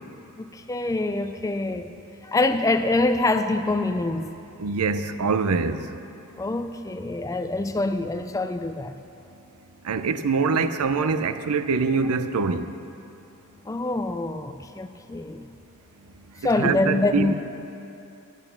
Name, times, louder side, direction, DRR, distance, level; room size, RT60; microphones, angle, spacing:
voice 1, 0.4-1.9 2.2-4.3 6.4-8.9 13.7-15.5 16.4-17.3, left 2 dB, 15° left, 8 dB, 0.4 m, -25 dB
voice 2, 4.6-5.9 9.8-12.7 16.6-17.3, right 4 dB, 80° right, 11 dB, 0.5 m, -24 dB
10.5 x 9.0 x 7.1 m, 2.8 s
head